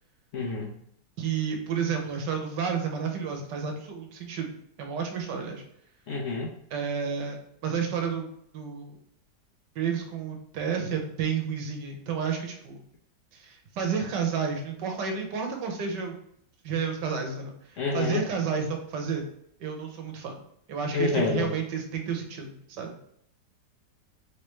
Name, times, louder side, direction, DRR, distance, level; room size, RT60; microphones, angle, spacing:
voice 1, 0.3-0.7 6.1-6.5 17.8-18.2 20.9-21.5, left 3 dB, 55° left, -3 dB, 0.9 m, -27 dB
voice 2, 1.2-4.5 4.8-5.6 6.7-7.4 7.6-9.0 9.7-12.8 13.3-16.2 16.6-19.2 19.6-20.4 20.7-22.9, right 6 dB, 80° right, 3 dB, 1.4 m, -31 dB
3.4 x 3.3 x 3.0 m, 0.71 s
omnidirectional pair, 1.9 m